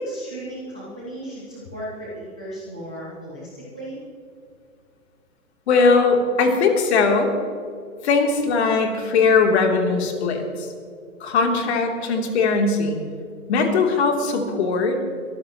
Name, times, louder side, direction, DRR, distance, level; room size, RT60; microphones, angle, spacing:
voice 1, 0.0-4.0, right 1 dB, 5° right, -7 dB, 0.3 m, -35 dB
voice 2, 5.7-7.3 8.0-10.7 11.2-13.0 13.5-15.0, left 4 dB, 50° left, 2 dB, 3.1 m, -20 dB
22.5 x 14.0 x 3.0 m, 2.3 s
hypercardioid pair, 145°, 43 cm